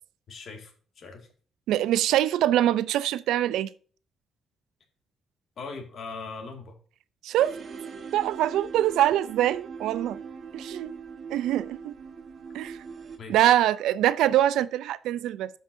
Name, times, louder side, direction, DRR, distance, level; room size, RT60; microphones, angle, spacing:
voice 1, 0.3-1.3 5.6-6.8 13.2-13.5, left 4 dB, 60° left, 2.0 m, -40 dB
voice 2, 1.7-3.7 7.2-7.5 8.1-10.2 10.5-10.9 11.3-11.9 12.5-12.8 13.3-15.5, right 12 dB, 85° right, 0.3 m, -24 dB
sound 1, 7.4-13.2, right 5 dB, 50° right, 1.2 m, -41 dB
13.0 x 5.5 x 2.6 m
cardioid pair, 90°, 0 cm